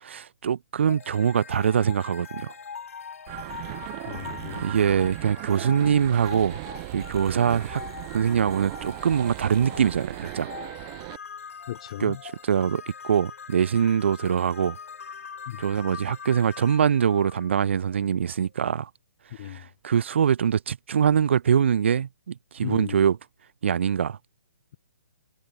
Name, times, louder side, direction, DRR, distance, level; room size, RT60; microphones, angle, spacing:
voice 1, 0.0-2.5 4.6-6.6 6.9-7.8 8.1-10.5 12.0-14.8 15.6-18.9 19.4-23.2 23.6-24.2, right 8 dB, 50° right, 0.8 m, -23 dB
sound 1, 0.9-18.0, left 6 dB, 70° left, 2.0 m, -42 dB
sound 2, 3.3-11.2, right 26 dB, 20° right, 0.6 m, -38 dB
voice 2, 4.1-4.7 11.7-12.2 15.5-15.6 19.4-19.6 22.6-23.0, left 13 dB, 25° left, 0.4 m, -35 dB
hypercardioid pair, 175°, 8 cm